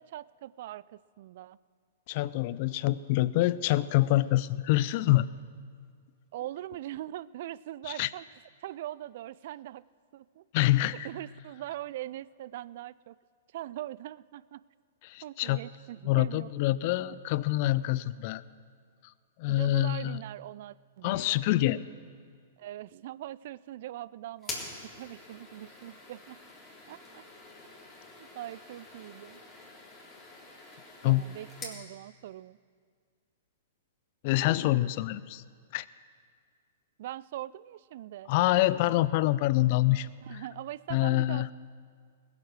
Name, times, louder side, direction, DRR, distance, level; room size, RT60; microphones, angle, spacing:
voice 1, 0.0-1.6 6.3-8.2 8.6-9.8 10.1-10.5 11.0-13.2 13.5-14.6 15.2-16.5 17.1-17.2 19.5-21.4 22.6-24.6 24.8-26.4 26.9-27.2 28.2-29.4 31.0-32.6 37.0-38.3 40.2-41.5, right 14 dB, 55° right, 20 dB, 0.3 m, -41 dB
voice 2, 2.1-5.3 8.0-8.1 10.5-11.1 15.0-15.6 16.1-18.4 19.4-20.2 21.0-21.8 31.0-31.2 34.2-35.4 35.7-35.9 38.3-40.1 40.9-41.5, left 16 dB, 45° left, 18 dB, 0.4 m, -26 dB
sound 1, 24.4-31.8, left 3 dB, 15° left, 3.5 m, -46 dB
20.5 x 7.4 x 6.2 m, 2.1 s
figure-of-eight pair, 110°, 0 cm